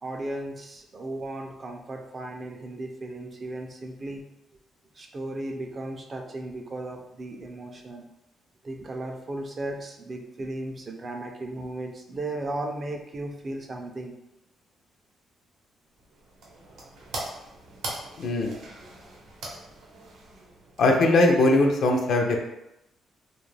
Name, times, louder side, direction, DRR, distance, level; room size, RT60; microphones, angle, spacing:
voice 1, 0.0-4.3 5.0-8.1 8.6-14.2, right 2 dB, 35° right, 3 dB, 0.4 m, -35 dB
sound 1, 15.9-21.3, right 2 dB, 85° right, 0.7 m, -41 dB
voice 2, 18.2-18.5 20.8-22.4, left 2 dB, 65° left, 2 dB, 0.5 m, -20 dB
2.3 x 2.1 x 3.2 m, 0.87 s
cardioid pair, 90°, 0 cm